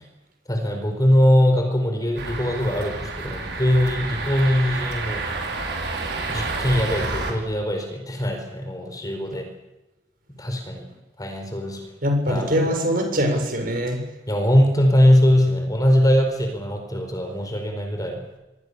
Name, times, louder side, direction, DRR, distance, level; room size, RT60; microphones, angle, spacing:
voice 1, 0.5-5.2 6.3-9.4 10.4-10.8 11.2-11.8 12.3-12.6 14.3-18.2, left 1 dB, 20° left, 4 dB, 4.7 m, -21 dB
sound 1, 2.2-7.3, right 3 dB, 65° right, 5.4 m, -29 dB
voice 2, 12.0-14.1, equal, 50° right, 3 dB, 7.3 m, -22 dB
27.0 x 22.5 x 7.0 m, 1.0 s
head